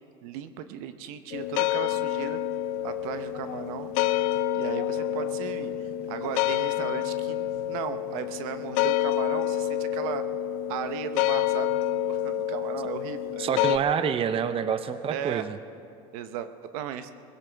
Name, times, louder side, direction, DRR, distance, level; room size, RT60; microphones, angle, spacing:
voice 1, 0.2-2.4 2.8-4.0 4.5-10.2 10.7-13.5 15.1-15.4 16.1-17.1, right 10 dB, 75° right, 10 dB, 0.8 m, -36 dB
sound 1, 1.3-13.8, left 12 dB, 75° left, 0.5 m, -28 dB
voice 2, 13.4-15.6, right 8 dB, 30° right, 11 dB, 0.6 m, -27 dB
20.5 x 16.5 x 3.4 m, 2.5 s
supercardioid pair, 105°, 18 cm